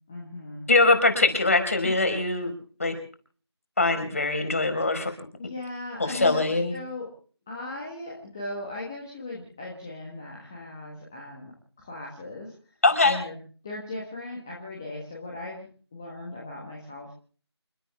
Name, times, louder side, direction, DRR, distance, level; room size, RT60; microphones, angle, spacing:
voice 1, 0.1-0.7 1.8-1.9 5.4-6.4 6.7-7.1 7.5-12.5 13.0-17.1, left 2 dB, 5° left, -4 dB, 1.5 m, -38 dB
voice 2, 0.7-2.5 2.8-2.9 3.8-5.1 6.0-6.8 12.8-13.2, left 3 dB, 30° left, 6 dB, 4.9 m, -22 dB
29.5 x 14.0 x 3.6 m, 0.42 s
figure-of-eight pair, 175°, 14 cm